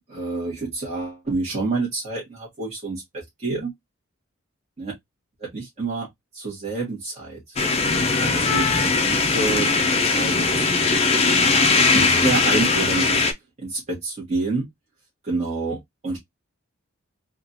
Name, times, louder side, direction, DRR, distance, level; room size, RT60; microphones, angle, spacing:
voice 1, 0.1-3.7 4.8-4.9 5.4-6.1 6.3-7.5 8.2-10.9 11.9-13.2 13.6-14.7 15.2-16.2, right 3 dB, 30° right, 1.4 m, -28 dB
sound 1, 7.6-13.3, left 4 dB, 30° left, 0.5 m, -20 dB
3.6 x 2.4 x 2.6 m
head